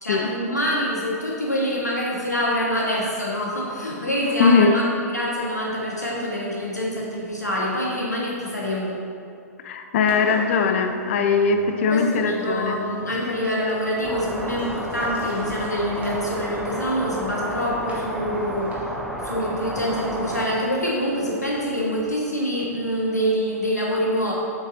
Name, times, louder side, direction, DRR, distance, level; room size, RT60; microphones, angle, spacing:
voice 1, 0.0-9.0 11.9-18.7 19.2-24.3, equal, 85° left, -4 dB, 1.5 m, -25 dB
voice 2, 4.4-4.8 9.6-12.8, left 5 dB, 50° left, 6 dB, 0.6 m, -20 dB
Engine, 10.0-22.1, right 1 dB, 15° right, 1.5 m, -42 dB
sound 1, 14.0-20.5, equal, ahead, 0.6 m, -32 dB
7.8 x 6.6 x 2.7 m, 2.4 s
figure-of-eight pair, 105°, 9 cm